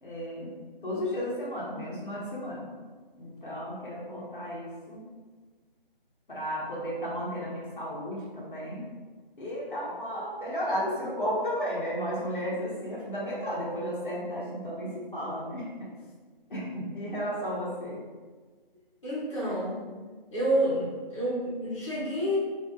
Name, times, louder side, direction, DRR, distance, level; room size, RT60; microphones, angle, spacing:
voice 1, 0.0-2.7 3.2-5.1 6.3-8.8 9.4-15.9 16.5-18.0, equal, 60° left, -6 dB, 1.1 m, -34 dB
voice 2, 18.7-19.8 20.3-22.4, right 1 dB, 30° left, -9 dB, 1.1 m, -29 dB
2.7 x 2.7 x 3.6 m, 1.4 s
hypercardioid pair, 175°, 29 cm